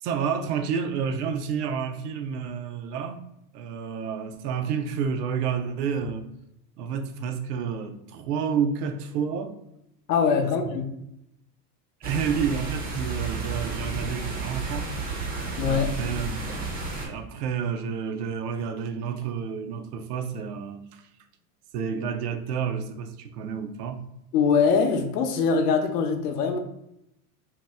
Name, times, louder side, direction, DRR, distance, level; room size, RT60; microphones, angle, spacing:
voice 1, 0.0-3.2 3.5-6.3 6.8-9.5 10.4-10.5 12.0-14.9 15.7-21.0 21.7-24.0, right 6 dB, 80° right, 0.6 m, -30 dB
voice 2, 10.1-10.8 15.6-15.9 24.3-26.6, left 5 dB, 85° left, 0.7 m, -22 dB
sound 1, 12.0-17.1, right 3 dB, 20° right, 0.4 m, -32 dB
2.9 x 2.0 x 3.3 m
supercardioid pair, 120°, 46 cm